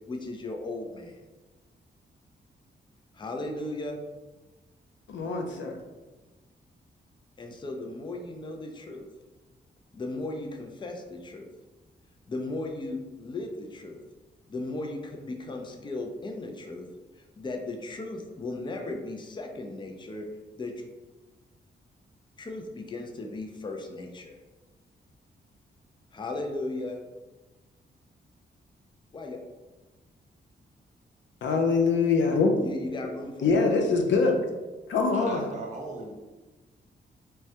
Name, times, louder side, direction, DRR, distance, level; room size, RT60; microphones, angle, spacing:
voice 1, 0.1-1.2 3.1-4.0 7.4-9.1 9.9-11.5 12.3-14.0 14.5-16.9 17.1-20.3 20.6-20.8 22.4-24.4 26.1-27.0 29.1-29.4 32.6-33.7, left 2 dB, 25° left, 3 dB, 0.4 m, -36 dB
voice 2, 5.1-5.7 31.4-32.6 33.4-34.4 34.9-35.4, left 4 dB, 80° left, 4 dB, 0.5 m, -23 dB
voice 3, 35.1-36.1, right 2 dB, 40° right, -1 dB, 0.7 m, -37 dB
3.2 x 2.2 x 2.7 m, 1.2 s
wide cardioid pair, 110°, 19 cm